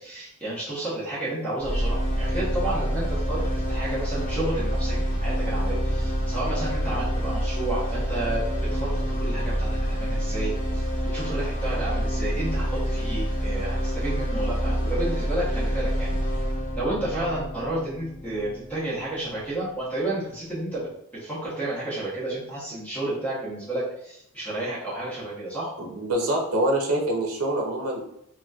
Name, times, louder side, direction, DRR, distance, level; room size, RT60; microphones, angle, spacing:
voice 1, 0.0-8.4 8.7-16.2 16.8-20.9 21.2-25.7, right 1 dB, 5° left, -9 dB, 0.9 m, -31 dB
sound 1, 1.6-19.6, equal, 25° right, 0.7 m, -27 dB
voice 2, 25.8-28.0, right 1 dB, 75° right, 0 dB, 0.7 m, -25 dB
3.9 x 2.1 x 2.3 m, 0.75 s
head